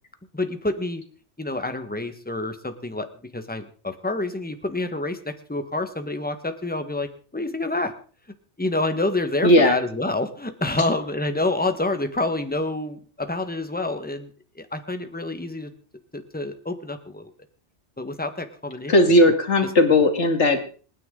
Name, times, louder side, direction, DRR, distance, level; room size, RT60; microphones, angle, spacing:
voice 1, 0.3-1.0 1.4-3.1 3.3-7.9 8.6-14.3 14.5-15.7 16.1-17.3 18.0-18.9 19.6-19.7, left 2 dB, 10° left, 8 dB, 1.4 m, -27 dB
voice 2, 9.4-9.8 18.9-20.7, left 1 dB, 75° left, 5 dB, 2.6 m, -17 dB
27.5 x 9.7 x 3.9 m, 0.40 s
omnidirectional pair, 1.2 m